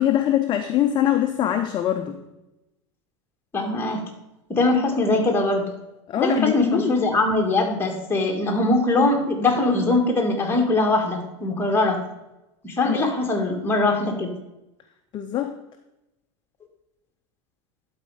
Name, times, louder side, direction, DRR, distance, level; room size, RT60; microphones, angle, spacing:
voice 1, 0.0-2.2 6.1-7.0 12.8-13.1 15.1-15.6, left 11 dB, 30° left, 6 dB, 0.6 m, -23 dB
voice 2, 3.5-4.0 4.5-5.6 6.2-12.0 12.6-14.3, left 2 dB, 15° left, 1 dB, 1.8 m, -21 dB
11.5 x 4.4 x 4.8 m, 0.94 s
supercardioid pair, 120°, 16 cm